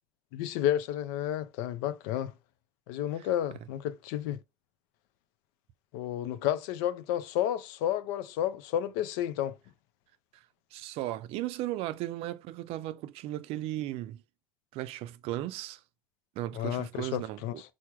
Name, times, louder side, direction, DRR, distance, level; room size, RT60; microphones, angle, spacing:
voice 1, 0.3-2.3 2.9-4.4 5.9-9.5 16.5-17.5, left 11 dB, 85° left, 0.4 m, -31 dB
voice 2, 10.7-14.2 14.7-15.8 16.4-17.6, right 14 dB, 70° right, 0.4 m, -36 dB
4.5 x 2.0 x 4.6 m
supercardioid pair, 80°, 10 cm